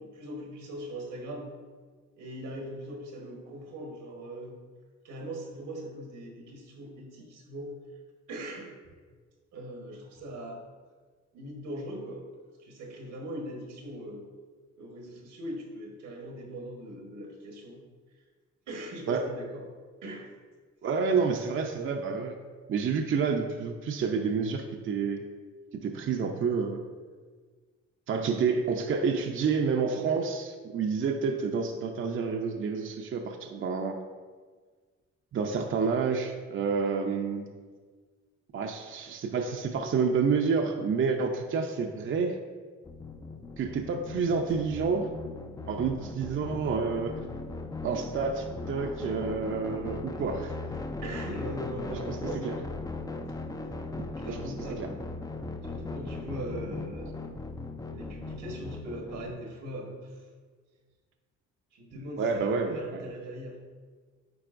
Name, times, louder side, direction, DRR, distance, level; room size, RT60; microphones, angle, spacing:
voice 1, 0.0-1.5 2.2-4.6 5.0-7.8 8.3-8.8 9.5-10.6 11.3-12.3 12.6-14.3 14.8-17.8 18.7-19.7 20.0-20.3 41.2-41.4 41.6-41.7 44.3-44.4 50.1-50.4 51.0-52.5 53.8-53.9 54.2-54.9 55.6-57.1 57.9-60.3 61.7-63.6, right 1 dB, 85° right, 0 dB, 1.4 m, -40 dB
voice 2, 20.8-22.3 22.7-25.2 25.7-26.8 28.1-34.0 35.3-37.5 38.5-42.4 43.6-45.1 45.7-47.2 47.8-50.5 51.9-52.2 52.4-52.5 54.3-54.5 54.8-54.9 62.2-63.0, right 5 dB, 45° right, 3 dB, 0.5 m, -29 dB
sound 1, 42.8-59.3, left 3 dB, 15° left, 0.3 m, -38 dB
9.4 x 4.1 x 2.5 m, 1.5 s
cardioid pair, 90°, 30 cm